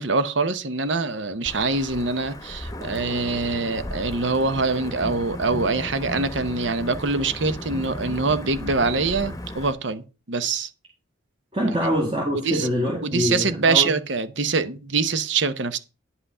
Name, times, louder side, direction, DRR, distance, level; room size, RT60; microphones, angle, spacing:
voice 1, 0.0-10.7 12.3-12.7 13.0-15.8, right 4 dB, 70° right, 0.9 m, -24 dB
Wind / Thunder / Rain, 1.5-9.7, left 1 dB, 15° left, 1.0 m, -35 dB
voice 2, 11.5-13.9, equal, 30° right, 2.1 m, -24 dB
9.8 x 5.8 x 5.5 m
head